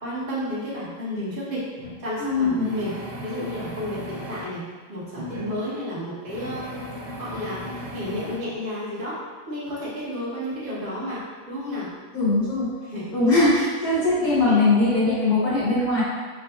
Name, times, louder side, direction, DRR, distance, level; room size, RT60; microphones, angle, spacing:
voice 1, 0.0-1.6 2.0-3.0 3.2-4.6 4.9-6.8 7.2-7.6 7.9-9.2 9.5-11.9 12.8-13.1 14.4-14.6, left 1 dB, 40° right, -9 dB, 1.2 m, -31 dB
sound 1, 1.8-1.9 2.6-4.4 5.2-5.5 6.3-8.4, equal, 60° right, 0.9 m, -36 dB
voice 2, 2.2-2.7 12.1-12.7 13.1-16.0, left 2 dB, 85° left, -11 dB, 2.1 m, -20 dB
4.8 x 2.3 x 2.4 m, 1.4 s
omnidirectional pair, 1.5 m